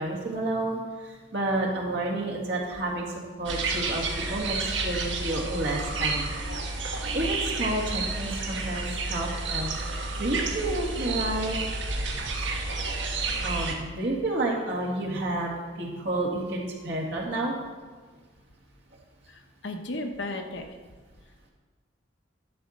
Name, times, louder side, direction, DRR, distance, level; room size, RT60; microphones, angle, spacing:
voice 1, 0.0-3.1 3.4-4.0 4.3-6.3 7.1-11.6 12.4-12.5 13.4-15.5 15.8-17.5, right 2 dB, 60° right, -2 dB, 1.9 m, -30 dB
sound 1, 3.5-13.7, right 3 dB, 75° right, 1.3 m, -30 dB
voice 2, 19.3-20.6, left 2 dB, 75° left, 4 dB, 1.0 m, -34 dB
11.5 x 4.3 x 6.4 m, 1.4 s
head